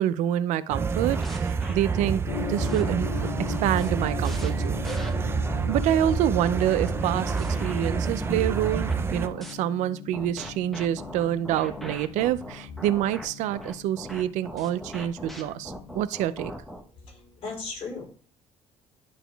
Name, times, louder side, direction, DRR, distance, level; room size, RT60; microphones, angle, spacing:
voice 1, 0.0-2.2 2.5-3.1 3.6-4.9 5.7-7.3 7.6-16.5, right 11 dB, 85° right, 0.5 m, -27 dB
sound 1, 0.7-9.3, right 5 dB, 20° right, 0.4 m, -28 dB
sound 2, 1.0-5.8 6.3-9.5 10.1-16.8, equal, ahead, 1.1 m, -40 dB
Gong, 2.3-16.0, left 11 dB, 85° left, 0.6 m, -40 dB
voice 2, 16.8-18.1, left 4 dB, 55° left, 4.2 m, -38 dB
11.0 x 4.1 x 3.3 m
cardioid pair, 145°, 12 cm